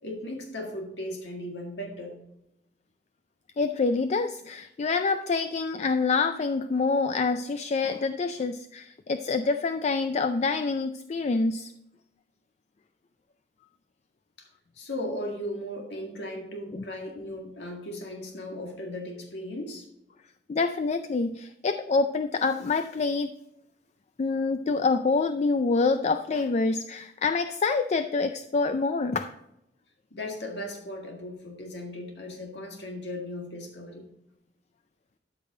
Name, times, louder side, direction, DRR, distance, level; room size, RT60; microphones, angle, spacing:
voice 1, 0.0-2.2 14.4-14.5 14.8-19.9 30.1-34.0, left 1 dB, 70° left, 1 dB, 1.9 m, -37 dB
voice 2, 3.6-11.7 16.7-16.8 20.5-23.3 24.2-29.3, left 4 dB, 40° left, 9 dB, 0.4 m, -26 dB
13.0 x 5.5 x 3.8 m, 0.83 s
head